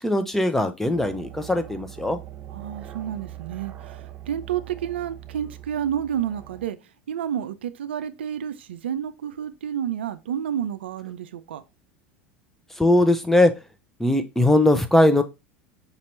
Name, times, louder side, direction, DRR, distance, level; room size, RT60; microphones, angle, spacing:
voice 1, 0.0-2.2 12.8-13.5 14.0-15.2, left 1 dB, 5° left, 0.7 m, -20 dB
sound 1, 0.9-6.7, right 12 dB, 40° right, 0.8 m, -41 dB
voice 2, 2.5-6.8 7.1-11.6, right 9 dB, 75° right, 0.4 m, -30 dB
5.2 x 2.9 x 3.2 m
hypercardioid pair, 85°, 6 cm